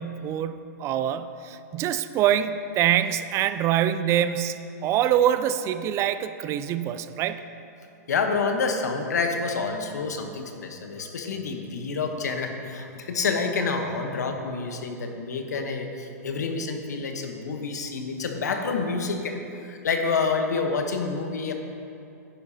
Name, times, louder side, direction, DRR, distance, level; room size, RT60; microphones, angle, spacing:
voice 1, 0.0-7.4, right 10 dB, 30° right, 12 dB, 0.4 m, -25 dB
voice 2, 8.1-21.5, left 4 dB, 80° left, 4 dB, 1.1 m, -28 dB
10.0 x 10.0 x 2.9 m, 2.7 s
hypercardioid pair, 120°, 9 cm